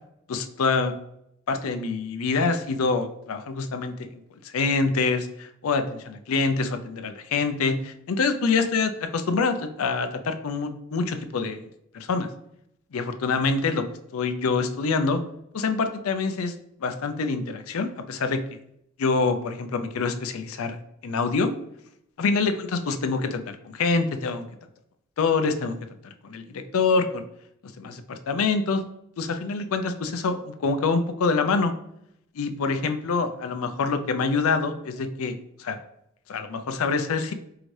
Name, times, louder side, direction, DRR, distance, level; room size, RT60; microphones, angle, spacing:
voice 1, 0.3-0.9 1.5-4.0 4.4-12.3 12.9-13.8 14.1-15.2 15.5-16.5 16.8-18.4 19.0-20.8 21.0-21.5 22.2-24.4 25.2-25.8 26.0-27.2 27.8-28.8 29.2-31.7 32.4-35.8 36.3-37.3, left 4 dB, 70° left, 8 dB, 0.4 m, -26 dB
4.7 x 2.6 x 3.2 m, 0.76 s
head